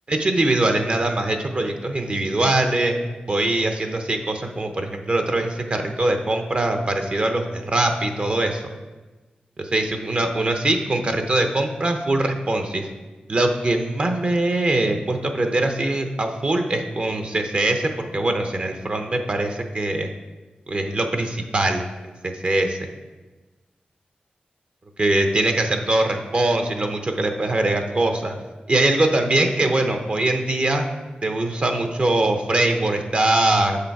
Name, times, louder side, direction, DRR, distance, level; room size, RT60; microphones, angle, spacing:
voice 1, 0.1-8.6 9.6-12.9 13.3-20.1 20.7-21.8 22.2-22.8 25.0-28.3 28.7-30.9 31.2-33.8, right 2 dB, 40° right, 5 dB, 0.7 m, -22 dB
6.6 x 5.8 x 4.7 m, 1.2 s
wide cardioid pair, 90°, 3 cm